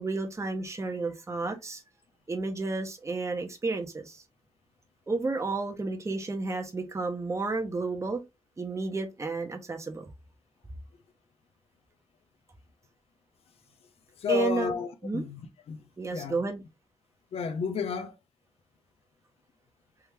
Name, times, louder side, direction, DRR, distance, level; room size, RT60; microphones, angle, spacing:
voice 1, 0.0-1.8 2.3-4.2 5.1-8.2 8.6-10.1 14.3-14.7 15.0-15.2 16.0-16.6, right 3 dB, 30° right, 0.9 m, -31 dB
voice 2, 14.2-15.8 16.1-16.4 17.3-18.2, left 6 dB, 85° left, 0.6 m, -32 dB
3.5 x 2.7 x 3.2 m
cardioid pair, 65°, 10 cm